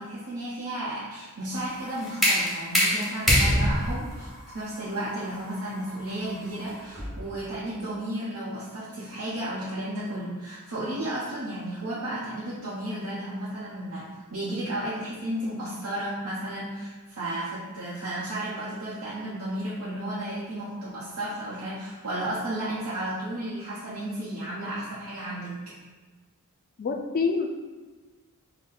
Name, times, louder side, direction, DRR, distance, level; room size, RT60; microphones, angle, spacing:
voice 1, 0.0-25.7, right 1 dB, 85° right, -8 dB, 0.7 m, -33 dB
sound 1, 1.5-7.3, equal, ahead, 0.8 m, -26 dB
voice 2, 26.8-27.5, left 5 dB, 40° left, 4 dB, 0.4 m, -26 dB
3.9 x 2.1 x 4.0 m, 1.3 s
head